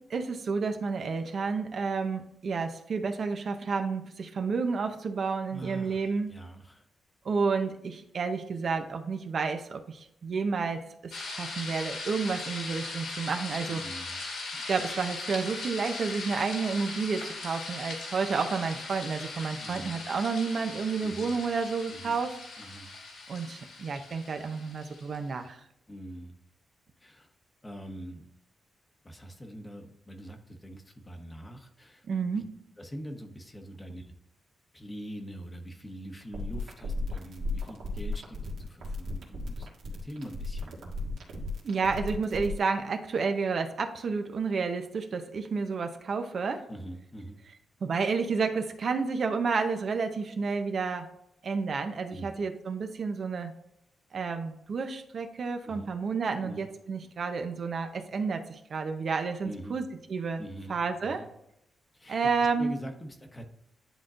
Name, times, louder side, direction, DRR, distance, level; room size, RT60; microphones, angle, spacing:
voice 1, 0.1-6.3 7.2-13.8 14.5-22.4 23.3-25.6 32.1-32.5 41.6-46.6 47.8-51.1 51.4-53.5 54.1-60.4 60.7-61.2 62.1-62.8, right 5 dB, 55° right, 6 dB, 0.7 m, -30 dB
voice 2, 5.5-6.8 13.7-14.2 19.6-20.0 21.0-21.4 21.9-22.2 22.6-22.9 25.9-26.3 27.0-27.3 27.6-28.3 29.0-32.0 32.3-32.4 32.8-34.1 34.7-40.8 46.7-47.4 52.1-52.3 55.7-55.9 56.4-56.6 59.4-59.8 60.4-61.3 61.9-62.2 62.6-63.4, equal, 20° left, 5 dB, 1.0 m, -43 dB
sound 1, 11.1-25.2, left 3 dB, 85° left, 2.1 m, -39 dB
sound 2, 36.2-42.6, left 1 dB, 85° right, 1.7 m, -35 dB
10.0 x 3.7 x 2.5 m, 0.79 s
cardioid pair, 105°, 0 cm